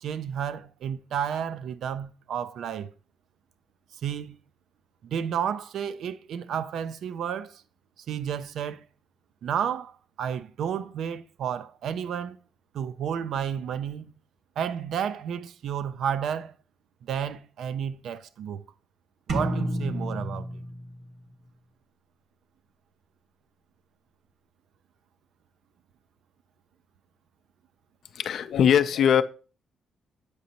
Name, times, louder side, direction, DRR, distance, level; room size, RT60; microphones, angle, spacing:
voice 1, 0.0-2.9 4.0-4.4 5.1-7.6 8.1-8.8 9.4-12.4 12.7-14.1 14.6-16.5 17.0-18.6 19.3-20.5, right 8 dB, 70° right, 0.5 m, -31 dB
sound 1, 19.3-21.3, right 1 dB, 55° right, 1.4 m, -30 dB
voice 2, 28.1-29.2, left 8 dB, 65° left, 0.5 m, -21 dB
8.0 x 5.1 x 2.8 m
cardioid pair, 90°, 0 cm